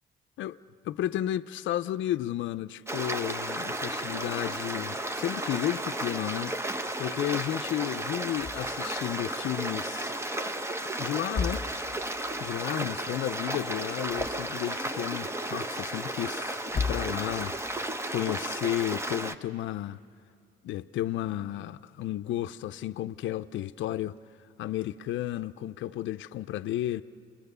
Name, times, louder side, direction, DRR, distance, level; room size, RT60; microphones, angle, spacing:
voice 1, 0.8-6.6 7.0-10.2 10.8-11.7 12.4-17.6 17.8-20.0 20.6-24.2 24.6-27.0, left 13 dB, 75° left, 0.5 m, -33 dB
Stream, 2.9-19.4, right 1 dB, 15° right, 0.9 m, -33 dB
sound 1, 8.4-8.9 9.2-9.3 11.1-12.2 13.9-14.7 16.6-17.5, left 5 dB, 30° left, 1.7 m, -34 dB
30.0 x 21.0 x 6.8 m
cardioid pair, 90°, 20 cm